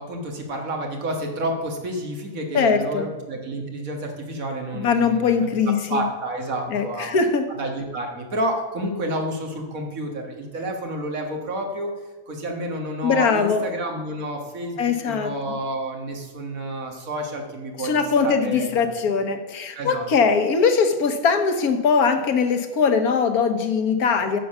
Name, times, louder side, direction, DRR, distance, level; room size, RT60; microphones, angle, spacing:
voice 1, 0.0-7.1 7.5-11.9 12.3-18.8 19.8-20.0, right 1 dB, 70° right, 2 dB, 2.0 m, -30 dB
voice 2, 2.5-3.1 4.7-6.0 6.7-7.4 13.0-13.6 14.8-15.3 17.8-24.4, left 5 dB, 90° left, 7 dB, 1.5 m, -21 dB
10.0 x 7.0 x 5.5 m, 1.3 s
omnidirectional pair, 1.5 m